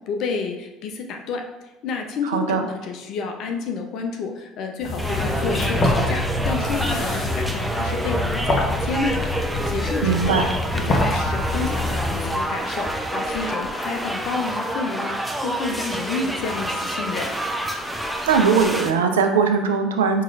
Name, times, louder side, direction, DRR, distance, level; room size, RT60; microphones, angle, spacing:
voice 1, 0.1-1.4 1.8-9.3 9.7-17.3, left 4 dB, 60° left, 3 dB, 0.5 m, -30 dB
voice 2, 2.2-2.7 10.0-10.5 18.3-20.2, right 5 dB, 80° right, 5 dB, 0.4 m, -20 dB
sound 1, 4.8-12.5, left 1 dB, 35° left, 0.9 m, -25 dB
sound 2, 5.0-18.9, right 1 dB, 5° right, 0.6 m, -28 dB
5.5 x 3.0 x 2.4 m, 1.0 s
hypercardioid pair, 60°, 0 cm